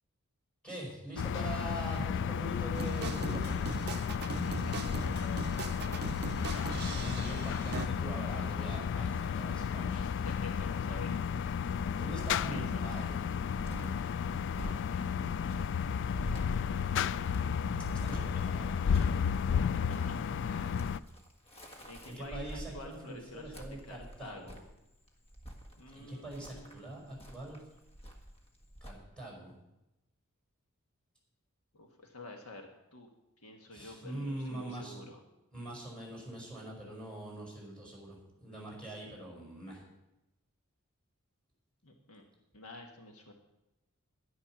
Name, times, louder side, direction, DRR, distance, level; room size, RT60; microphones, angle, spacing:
voice 1, 0.6-3.8 6.5-10.0 12.0-13.2 17.9-19.2 22.1-24.5 25.9-27.6 28.8-29.5 33.7-35.0 35.5-39.8, right 1 dB, 5° left, -3 dB, 5.2 m, -43 dB
sound 1, 1.2-21.0, left 7 dB, 55° left, 0.3 m, -33 dB
sound 2, 2.7-7.9, right 4 dB, 50° right, 0.6 m, -40 dB
voice 2, 4.3-6.0 9.9-11.2 12.4-12.9 14.6-15.1 20.1-20.8 21.8-24.6 25.8-27.3 31.7-33.1 33.4-35.2 41.8-42.2 42.5-43.3, left 2 dB, 75° left, 3 dB, 1.5 m, -49 dB
Cricket, 11.1-28.9, equal, 30° left, 1.5 m, -47 dB
11.0 x 10.0 x 6.0 m, 0.93 s
head